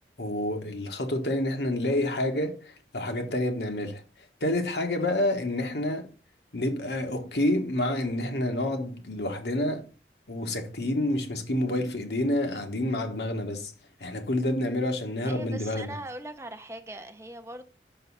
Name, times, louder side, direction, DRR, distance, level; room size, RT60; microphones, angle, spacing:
voice 1, 0.2-4.0 4.4-6.1 6.5-9.9 10.3-13.7 14.0-16.0, left 1 dB, 75° left, 1.4 m, -28 dB
voice 2, 15.3-17.6, right 1 dB, 15° right, 0.5 m, -40 dB
6.6 x 6.1 x 4.1 m
head